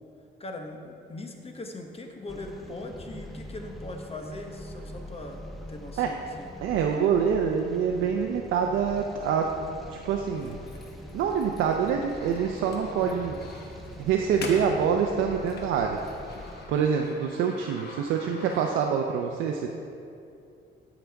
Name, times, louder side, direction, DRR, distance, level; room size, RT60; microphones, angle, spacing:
voice 1, 0.4-6.5, left 2 dB, 30° left, 3 dB, 0.9 m, -40 dB
sound 1, 2.3-16.7, left 1 dB, ahead, 0.9 m, -43 dB
voice 2, 6.6-9.5 9.9-10.6 11.1-13.4 14.0-16.0 16.7-19.7, right 7 dB, 90° right, 2 dB, 0.5 m, -26 dB
sound 2, 10.3-19.2, left 3 dB, 55° left, 1.1 m, -45 dB
13.0 x 5.0 x 3.4 m, 2.6 s
cardioid pair, 90°, 20 cm